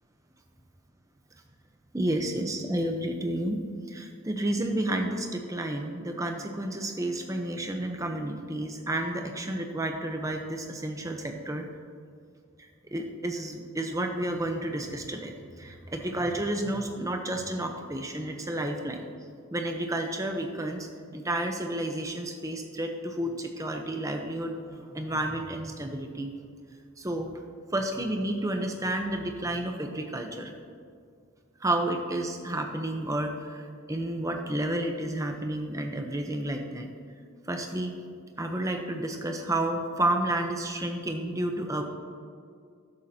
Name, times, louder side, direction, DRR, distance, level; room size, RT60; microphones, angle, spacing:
voice 1, 1.9-3.6 3.9-11.6 12.9-19.1 19.5-20.9 21.1-24.6 24.9-26.3 27.0-27.3 27.7-30.5 31.6-36.9 37.5-37.9 38.4-41.8, right 1 dB, 15° right, 3 dB, 0.8 m, -31 dB
13.0 x 10.5 x 2.9 m, 2.2 s
head